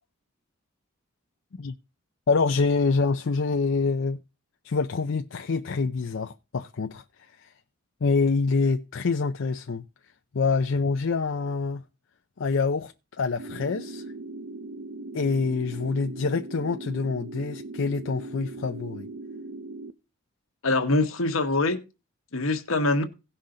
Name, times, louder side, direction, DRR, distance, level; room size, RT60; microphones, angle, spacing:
voice 1, 2.3-4.2 4.6-7.5 8.0-9.8 10.3-11.8 12.4-12.9 13.2-14.1 15.1-19.1, left 4 dB, 60° left, 0.5 m, -26 dB
sound 1, 13.4-19.9, right 2 dB, 60° right, 0.6 m, -39 dB
voice 2, 20.6-21.8 22.3-23.0, left 2 dB, 80° left, 1.3 m, -24 dB
17.0 x 5.7 x 3.8 m
head